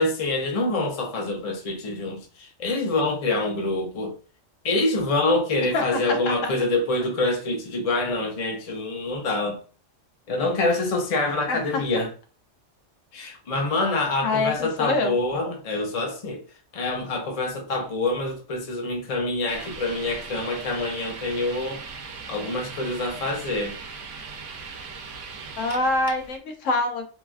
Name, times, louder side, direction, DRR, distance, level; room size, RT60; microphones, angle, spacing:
voice 1, 0.0-4.2 4.6-9.6 10.3-12.1 13.1-16.4 16.7-21.8 22.3-23.8, left 2 dB, 40° left, 0.6 m, -26 dB
voice 2, 6.1-6.5 11.5-11.8 14.2-15.2 25.6-27.1, left 2 dB, 90° left, 1.1 m, -25 dB
sound 1, 19.5-26.4, right 4 dB, 75° right, 0.9 m, -39 dB
3.1 x 2.3 x 2.4 m
omnidirectional pair, 1.3 m